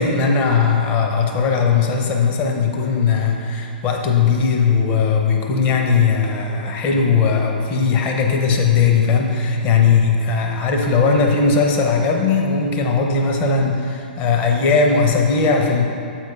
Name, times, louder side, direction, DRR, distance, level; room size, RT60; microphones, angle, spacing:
voice 1, 0.0-15.8, left 5 dB, 30° left, 2 dB, 0.7 m, -18 dB
7.6 x 4.6 x 3.6 m, 2.5 s
figure-of-eight pair, 110°, 5 cm